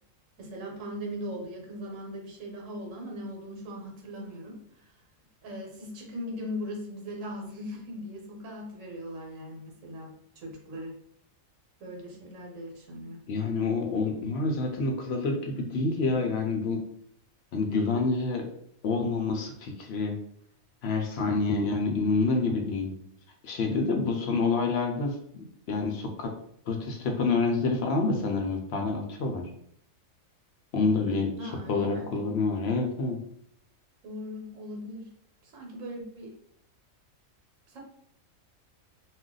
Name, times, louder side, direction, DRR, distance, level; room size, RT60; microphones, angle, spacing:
voice 1, 0.4-4.6 5.4-11.0 11.8-13.2 31.4-32.1 34.0-35.1 35.4-36.4 37.7-37.8, equal, 70° right, 1 dB, 1.1 m, -39 dB
voice 2, 13.3-16.8 17.5-18.5 18.8-20.2 20.8-22.9 23.4-26.3 26.7-29.5 30.7-33.2, left 3 dB, 65° left, 2 dB, 0.7 m, -28 dB
2.4 x 2.2 x 3.8 m, 0.69 s
omnidirectional pair, 1.4 m